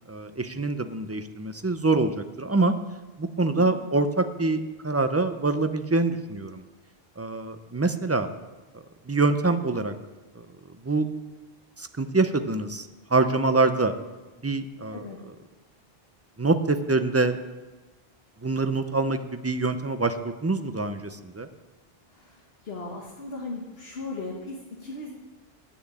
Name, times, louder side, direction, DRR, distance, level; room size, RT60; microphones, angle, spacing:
voice 1, 0.1-2.7 3.2-6.6 7.2-8.3 9.1-9.9 10.8-11.1 11.8-13.9 14.4-15.1 16.4-17.4 18.4-21.5, right 3 dB, 20° right, 9 dB, 0.5 m, -25 dB
voice 2, 3.5-3.8 14.9-15.2 22.1-25.1, left 3 dB, 75° left, -1 dB, 1.6 m, -37 dB
9.4 x 7.1 x 8.9 m, 1.2 s
omnidirectional pair, 1.0 m